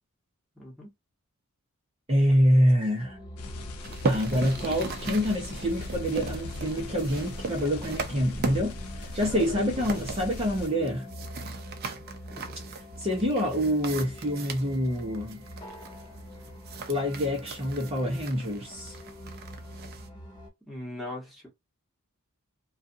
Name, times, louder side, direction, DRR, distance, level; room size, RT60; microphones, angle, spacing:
voice 1, 0.5-0.9 9.2-9.9 12.3-12.5 20.7-21.5, left 2 dB, ahead, 1.2 m, -39 dB
voice 2, 2.1-3.2 4.0-11.1 13.0-15.4 16.9-19.0, equal, 25° right, 0.8 m, -26 dB
sound 1, 3.0-20.5, equal, 20° left, 1.0 m, -44 dB
sound 2, 3.4-10.7, left 2 dB, 80° left, 0.6 m, -40 dB
sound 3, 3.8-20.1, right 4 dB, 45° right, 0.5 m, -39 dB
2.5 x 2.3 x 2.6 m
head